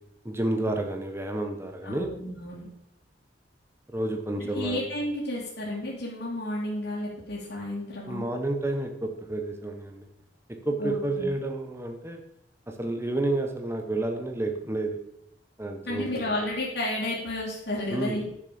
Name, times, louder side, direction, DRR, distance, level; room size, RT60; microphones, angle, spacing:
voice 1, 0.2-2.1 3.9-4.8 8.1-10.1 10.5-12.2 12.7-15.0 15.6-16.1 17.9-18.2, right 2 dB, 15° right, 4 dB, 1.2 m, -30 dB
voice 2, 1.8-2.7 4.5-8.3 10.8-11.3 15.8-18.3, left 1 dB, 65° left, -8 dB, 2.5 m, -32 dB
9.9 x 6.8 x 5.1 m, 0.77 s
head